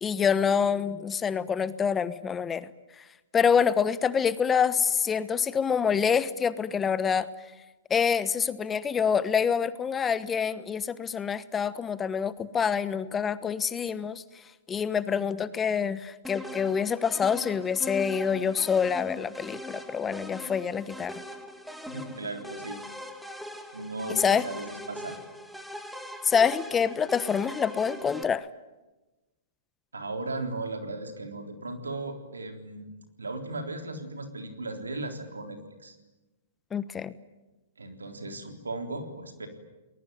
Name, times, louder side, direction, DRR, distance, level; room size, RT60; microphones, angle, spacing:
voice 1, 0.0-2.7 3.3-7.3 7.9-14.2 14.7-21.1 24.2-24.4 26.2-28.5 36.7-37.1, left 7 dB, 20° left, 15 dB, 1.1 m, -26 dB
sound 1, 16.2-28.2, equal, ahead, 2.2 m, -41 dB
voice 2, 21.9-22.8 23.7-25.2 29.9-32.9 33.2-36.0 37.8-39.5, right 2 dB, 85° right, 6 dB, 3.8 m, -36 dB
30.0 x 20.5 x 9.5 m, 1.1 s
hypercardioid pair, 115°, 0 cm